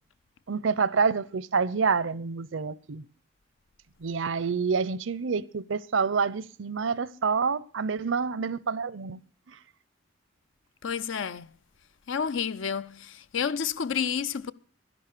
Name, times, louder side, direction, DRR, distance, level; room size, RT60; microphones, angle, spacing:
voice 1, 0.5-3.0 4.0-9.2 9.5-9.6, right 5 dB, 75° right, 0.6 m, -27 dB
voice 2, 10.8-11.5 12.1-14.5, left 7 dB, 80° left, 0.5 m, -30 dB
12.0 x 11.0 x 6.6 m
head